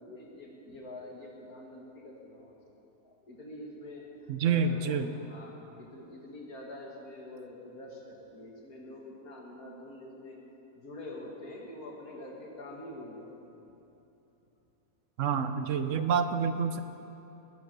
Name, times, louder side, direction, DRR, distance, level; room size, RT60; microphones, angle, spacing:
voice 1, 0.0-10.4 10.7-13.6, left 1 dB, 65° left, -1 dB, 2.4 m, -46 dB
voice 2, 4.3-5.1 15.2-16.8, right 6 dB, 60° right, 9 dB, 0.9 m, -28 dB
19.5 x 7.6 x 6.7 m, 3.0 s
omnidirectional pair, 1.7 m